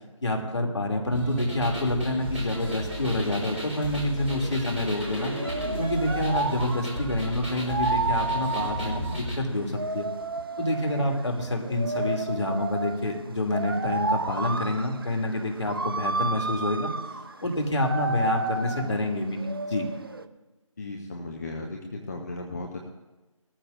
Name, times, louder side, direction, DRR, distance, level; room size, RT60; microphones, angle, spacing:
voice 1, 0.2-5.3 5.8-10.1 10.6-16.9 17.4-19.9, left 1 dB, 55° left, 1 dB, 2.7 m, -27 dB
sound 1, 1.1-9.4, equal, 20° right, 4.5 m, -34 dB
sound 2, 2.2-20.3, right 3 dB, 45° right, 0.6 m, -32 dB
voice 2, 20.8-22.8, left 2 dB, 30° left, 1 dB, 0.9 m, -36 dB
19.5 x 14.0 x 2.6 m, 1.2 s
figure-of-eight pair, 160°, 17 cm